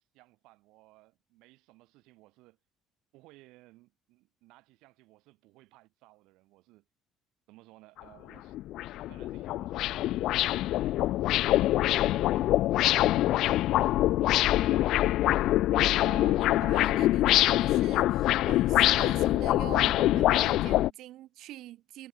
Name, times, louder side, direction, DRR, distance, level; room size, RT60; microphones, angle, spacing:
voice 1, 0.0-2.6 3.1-6.8 7.5-8.6 9.1-12.6 12.9-13.7 14.2-15.0 15.5-15.7, right 20 dB, 85° right, 8.0 m, -59 dB
sound 1, 8.0-8.1 8.5-20.9, left 15 dB, 60° left, 0.4 m, -25 dB
voice 2, 15.7-22.1, right 15 dB, 60° right, 3.3 m, -44 dB
cardioid pair, 175°, 0 cm